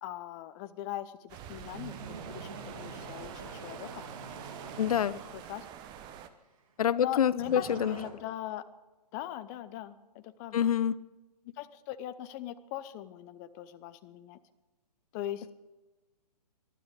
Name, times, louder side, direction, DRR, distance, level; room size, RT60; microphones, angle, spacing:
voice 1, 0.0-4.1 5.1-5.6 7.0-8.6 9.1-10.7 11.4-14.4 15.1-15.5, left 12 dB, 25° left, 13 dB, 0.7 m, -40 dB
sound 1, 1.3-6.3, right 9 dB, 20° right, 0.9 m, -47 dB
sound 2, 1.6-5.4 7.4-8.1, right 5 dB, 55° right, 2.9 m, -44 dB
voice 2, 4.8-5.2 6.8-8.0 10.5-11.0, left 9 dB, 60° left, 17 dB, 0.7 m, -26 dB
19.0 x 12.5 x 5.0 m, 1.2 s
hypercardioid pair, 140°, 21 cm